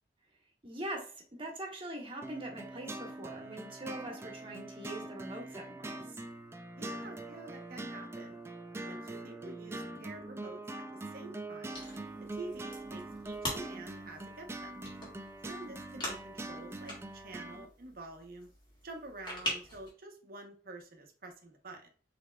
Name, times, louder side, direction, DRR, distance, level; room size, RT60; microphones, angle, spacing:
voice 1, 0.6-6.2, right 1 dB, 30° right, 1 dB, 1.2 m, -43 dB
sound 1, 2.2-17.7, right 2 dB, 15° right, 0.3 m, -43 dB
voice 2, 6.8-8.4 8.9-11.8 12.2-14.8 15.4-18.5 18.8-21.9, right 2 dB, 55° right, 4 dB, 0.8 m, -48 dB
sound 2, 11.7-19.9, left 1 dB, 25° left, 1.8 m, -43 dB
5.8 x 3.4 x 2.2 m, 0.41 s
head